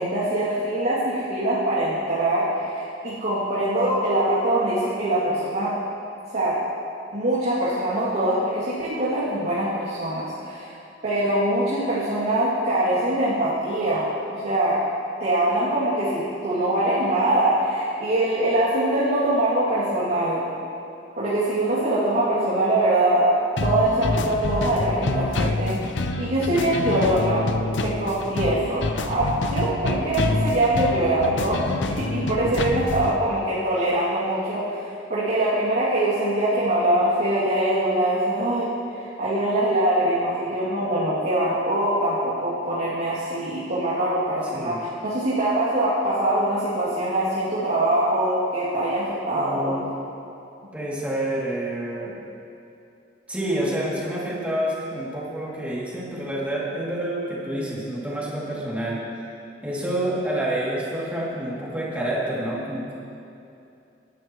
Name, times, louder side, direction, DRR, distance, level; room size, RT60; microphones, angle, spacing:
voice 1, 0.0-5.7 6.3-6.6 7.1-10.7 11.0-14.8 15.2-20.4 21.2-23.3 23.6-25.8 26.2-31.6 31.9-34.8 35.1-38.7 39.0-49.7, right 1 dB, 55° right, -12 dB, 2.8 m, -23 dB
sound 1, 23.6-33.1, left 2 dB, 75° left, 0.7 m, -27 dB
voice 2, 49.3-49.9 50.7-52.2 53.3-59.0 59.6-62.9, right 1 dB, 10° right, -7 dB, 2.8 m, -28 dB
20.0 x 12.0 x 3.2 m, 2.6 s
head